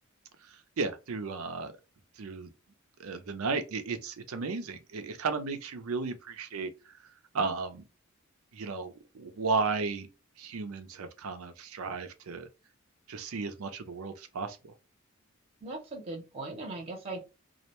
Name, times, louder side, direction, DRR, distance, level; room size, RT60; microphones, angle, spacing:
voice 1, 0.5-1.7 2.2-2.5 3.0-7.0 7.3-7.8 8.5-10.1 10.4-12.5 13.1-14.7, right 4 dB, 85° right, 0.5 m, -34 dB
voice 2, 15.6-17.2, right 2 dB, 30° right, 0.7 m, -39 dB
2.4 x 2.1 x 2.9 m
head